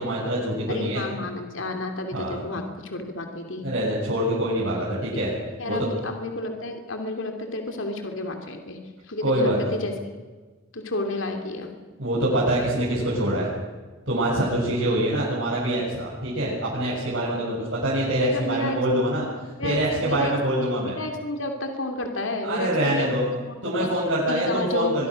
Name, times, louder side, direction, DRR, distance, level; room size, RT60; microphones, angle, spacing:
voice 1, 0.0-1.0 2.1-2.4 3.6-5.3 5.7-5.8 9.2-9.8 12.0-13.5 14.1-19.2 19.6-20.9 22.4-23.3 23.6-25.1, right 1 dB, 60° right, -8 dB, 7.6 m, -25 dB
voice 2, 0.7-3.6 5.6-8.8 9.1-10.1 10.7-11.7 18.2-18.8 19.6-20.3 20.6-23.1 23.5-25.1, left 2 dB, 65° left, 4 dB, 2.9 m, -31 dB
24.0 x 23.0 x 6.5 m, 1.3 s
head